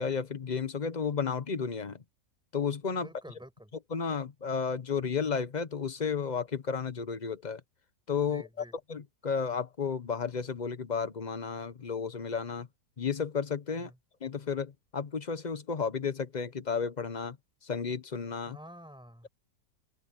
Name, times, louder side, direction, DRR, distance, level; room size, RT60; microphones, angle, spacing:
voice 1, 0.0-2.0 2.5-3.1 3.9-7.6 8.1-8.5 8.9-12.7 13.0-13.9 14.2-17.4 17.6-18.6, left 6 dB, 35° left, 0.8 m, -32 dB
voice 2, 3.0-3.7 8.3-8.7 13.8-14.0 18.5-19.3, equal, 5° right, 7.8 m, -49 dB
open air
omnidirectional pair, 1.8 m